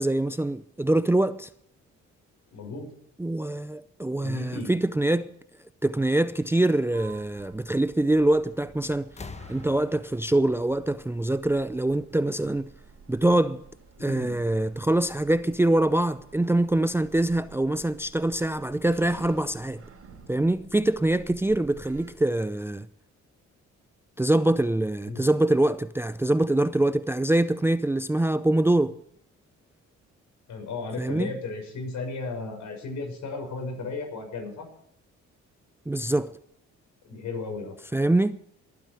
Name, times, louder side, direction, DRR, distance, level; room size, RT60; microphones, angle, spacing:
voice 1, 0.0-1.5 3.2-5.3 5.8-9.1 9.5-12.7 13.1-13.6 14.0-19.8 20.3-22.9 24.2-29.0 31.0-31.3 35.9-36.3 37.9-38.4, right 1 dB, 10° right, 0.5 m, -24 dB
voice 2, 2.5-2.9 4.2-4.7 14.0-14.4 25.1-25.3 30.5-34.7 37.0-37.8, left 3 dB, 75° left, 6.4 m, -35 dB
Sliding door, 6.9-22.1, right 5 dB, 50° right, 3.7 m, -51 dB
sound 1, 8.4-8.7 9.0-11.8 12.9-13.0, left 4 dB, 20° left, 1.0 m, -46 dB
20.5 x 9.8 x 4.8 m
cardioid pair, 90°, 30 cm